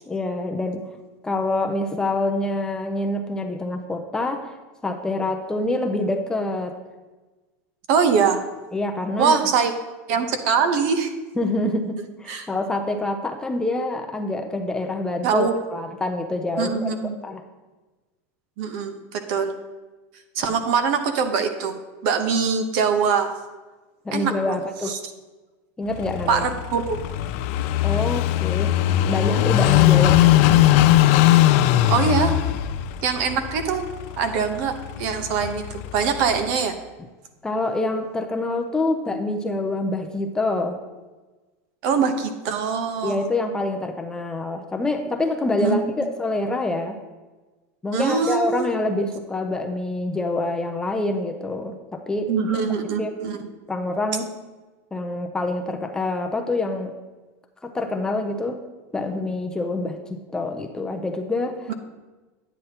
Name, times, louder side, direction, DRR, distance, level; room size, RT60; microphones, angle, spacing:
voice 1, 0.1-0.8 1.2-4.6 4.8-6.8 8.7-9.4 11.4-16.9 17.2-17.4 24.1-25.0 25.8-26.5 27.8-28.7 29.1-30.7 37.4-40.8 43.0-47.0 47.8-52.5 53.0-53.1 53.7-54.3 54.9-56.9 57.6-58.6 58.9-61.7, left 2 dB, 10° left, 3 dB, 0.5 m, -26 dB
voice 2, 7.9-8.4 9.2-9.7 10.1-11.1 12.3-12.5 15.2-15.5 16.6-17.2 18.6-19.6 20.4-23.4 24.1-24.6 24.8-25.0 26.3-27.0 31.9-32.4 33.0-33.8 34.2-36.8 41.8-43.3 45.6-45.8 47.9-48.7 52.3-53.5 61.7-61.8, right 6 dB, 55° right, 8 dB, 0.9 m, -23 dB
Car passing by / Idling, 25.9-36.6, left 14 dB, 60° left, 0.4 m, -20 dB
9.5 x 9.0 x 2.9 m, 1.2 s
supercardioid pair, 150°, 8 cm